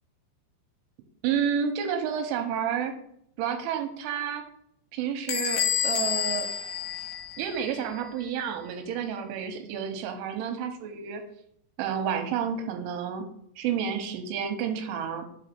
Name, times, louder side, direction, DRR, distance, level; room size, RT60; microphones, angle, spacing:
voice 1, 1.2-2.9 3.4-4.5 4.9-6.5 7.4-11.2 11.8-13.2 13.6-15.3, right 8 dB, 90° right, 6 dB, 3.3 m, -30 dB
Bell / Squeak, 5.3-7.8, left 9 dB, 80° left, 2.6 m, -29 dB
6.0 x 5.4 x 4.5 m, 0.70 s
omnidirectional pair, 5.6 m